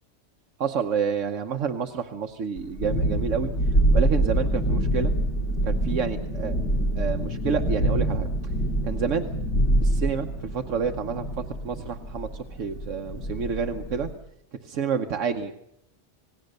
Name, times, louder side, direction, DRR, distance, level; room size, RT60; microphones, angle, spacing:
voice 1, 0.6-3.5 3.9-5.1 5.6-6.5 7.0-8.3 8.8-9.3 9.8-11.3 11.6-14.1 14.6-15.5, right 6 dB, 75° right, 5 dB, 1.4 m, -29 dB
Thunderstorm, 2.6-14.1, right 1 dB, 70° left, 2.4 m, -25 dB
27.0 x 19.5 x 6.6 m, 0.82 s
omnidirectional pair, 1.3 m